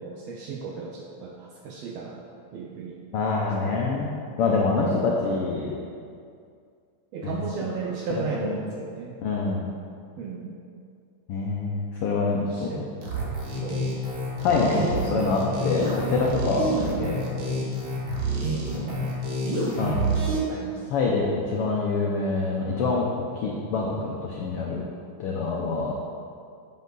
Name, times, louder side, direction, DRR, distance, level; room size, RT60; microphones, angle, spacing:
voice 1, 0.0-2.2 2.5-3.0 3.6-3.8 7.1-9.2 10.2-10.5 12.5-12.9 13.5-14.0 14.5-15.6 16.6-17.2 18.7-19.1 20.5-20.9 25.6-25.9, right 5 dB, 75° right, -1 dB, 1.5 m, -35 dB
voice 2, 3.1-4.1 4.4-5.8 7.2-7.3 8.3-8.6 9.2-9.7 11.3-12.7 14.4-17.3 18.2-18.4 18.7-19.1 19.8-20.1 20.9-23.1 23.3-24.8 25.2-25.9, left 4 dB, 85° left, -2 dB, 1.2 m, -26 dB
sound 1, 13.0-20.4, right 1 dB, 55° right, 1.2 m, -28 dB
7.5 x 7.3 x 3.9 m, 2.3 s
omnidirectional pair, 3.5 m